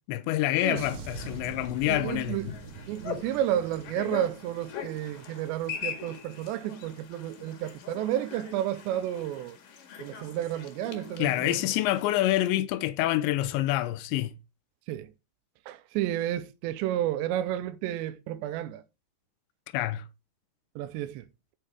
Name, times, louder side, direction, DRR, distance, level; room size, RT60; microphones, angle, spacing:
voice 1, 0.1-2.5 11.2-14.3 19.7-20.0, left 15 dB, 85° left, 2.6 m, -27 dB
sound 1, 0.7-5.3 5.6-5.9, right 4 dB, 55° right, 2.0 m, -44 dB
sound 2, 1.1-12.5, left 7 dB, 55° left, 2.9 m, -43 dB
voice 2, 1.9-2.5 2.9-9.6 10.0-11.6 14.9-15.1 15.7-18.8 20.8-21.2, right 12 dB, 90° right, 2.5 m, -31 dB
10.0 x 8.6 x 3.5 m
omnidirectional pair, 5.9 m